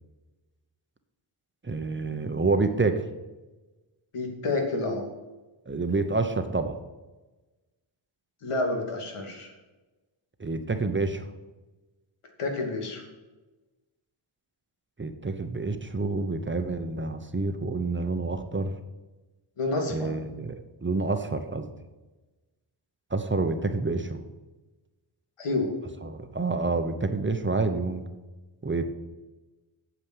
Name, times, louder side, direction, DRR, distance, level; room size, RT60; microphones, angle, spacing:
voice 1, 1.6-3.0 5.7-6.7 10.4-11.2 15.0-18.7 19.9-21.7 23.1-24.2 26.0-28.0 28.6-28.9, right 3 dB, 25° right, 7 dB, 0.9 m, -28 dB
voice 2, 4.1-5.1 8.4-9.5 12.4-13.0 19.6-20.1 25.4-25.7, left 2 dB, 85° left, 2 dB, 2.6 m, -29 dB
8.9 x 7.2 x 7.9 m, 1.2 s
wide cardioid pair, 130°, 50 cm